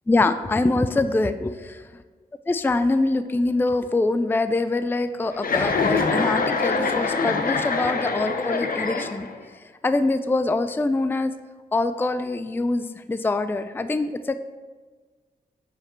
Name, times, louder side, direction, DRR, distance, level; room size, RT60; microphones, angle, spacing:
voice 1, 0.1-1.8 2.5-9.3 9.8-11.3 11.7-14.4, left 2 dB, 10° left, 11 dB, 0.4 m, -24 dB
Chuckle chortle, 5.4-9.4, left 4 dB, 60° left, 0.9 m, -24 dB
8.3 x 5.0 x 4.5 m, 1.4 s
cardioid pair, 55°, 17 cm